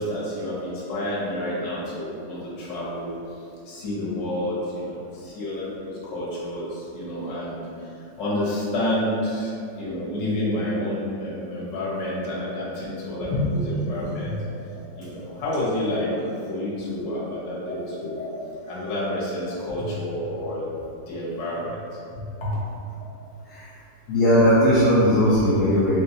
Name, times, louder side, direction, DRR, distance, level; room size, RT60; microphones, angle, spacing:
voice 1, 0.0-3.1 3.6-14.4 15.0-20.7 21.1-21.8 22.2-22.5, left 1 dB, 50° left, -7 dB, 1.0 m, -29 dB
voice 2, 24.1-26.0, equal, 85° left, -8 dB, 0.7 m, -19 dB
3.2 x 2.9 x 2.7 m, 2.6 s
omnidirectional pair, 1.9 m